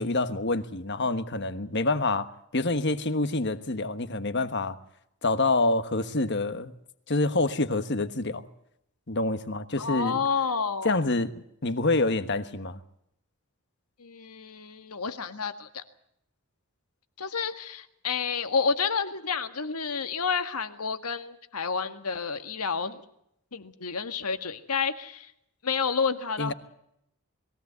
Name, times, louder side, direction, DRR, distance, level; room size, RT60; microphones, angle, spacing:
voice 1, 0.0-4.8 5.2-6.7 7.1-8.4 9.1-10.2 10.8-11.3 11.6-12.8 26.4-26.5, left 2 dB, 50° left, 1.3 m, -27 dB
voice 2, 9.8-10.9 14.0-15.8 17.2-23.0 23.5-25.3 25.6-26.5, left 5 dB, 90° left, 1.8 m, -30 dB
21.5 x 17.0 x 8.2 m
head